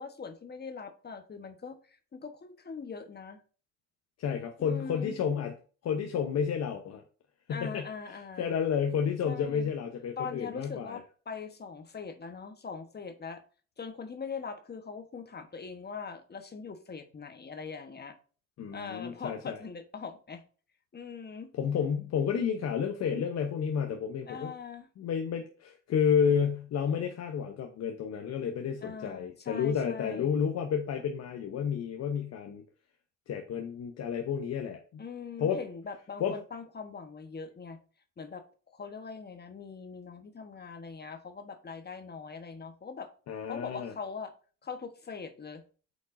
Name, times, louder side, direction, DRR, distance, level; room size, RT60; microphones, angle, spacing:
voice 1, 0.0-3.4 4.6-5.1 7.5-8.6 9.3-9.7 10.2-13.4 13.8-18.2 18.7-20.4 20.9-21.5 24.3-24.9 28.8-30.3 35.0-37.8 38.2-38.4 38.7-43.1 43.5-44.3 44.6-45.6, left 5 dB, 35° left, 7 dB, 1.2 m, -42 dB
voice 2, 4.2-5.6 5.8-7.0 7.5-7.9 8.4-11.0 18.6-19.6 21.5-24.5 25.0-32.6 33.3-35.0 35.4-35.6 36.2-36.4 43.3-43.9, left 7 dB, 60° left, 5 dB, 0.9 m, -31 dB
8.2 x 5.2 x 2.6 m, 0.39 s
supercardioid pair, 65°, 29 cm